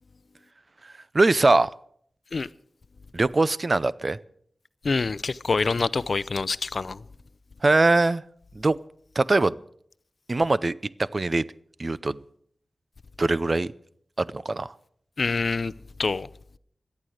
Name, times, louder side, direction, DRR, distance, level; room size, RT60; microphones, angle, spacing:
voice 1, 0.8-1.7 3.1-4.2 7.6-8.2 8.5-8.8 9.2-9.6 10.3-11.5 11.8-12.2 13.2-13.7 14.2-14.7, right 2 dB, 40° right, 0.6 m, -22 dB
voice 2, 4.8-7.0 15.2-15.7 16.0-16.3, left 4 dB, 60° left, 0.6 m, -26 dB
18.0 x 11.5 x 6.4 m
wide cardioid pair, 80°, 0 cm